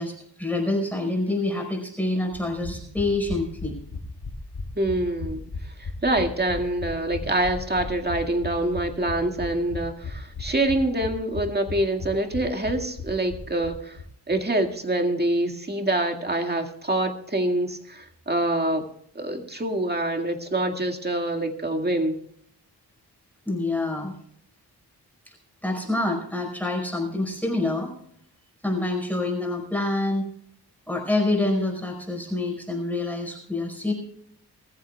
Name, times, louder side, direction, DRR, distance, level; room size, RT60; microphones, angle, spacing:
voice 1, 0.0-3.7 23.4-24.1 25.3-25.4 25.6-27.9 28.6-30.2 30.9-33.9, left 2 dB, 5° left, 0 dB, 5.0 m, -26 dB
sound 1, 2.3-14.0 14.3-14.4 14.6-14.7, left 4 dB, 65° left, 3.0 m, -36 dB
voice 2, 4.8-5.4 5.8-14.0 14.3-18.9 19.2-22.2, right 1 dB, 25° right, 4 dB, 2.0 m, -25 dB
23.0 x 14.0 x 2.3 m, 0.67 s
wide cardioid pair, 110°, 41 cm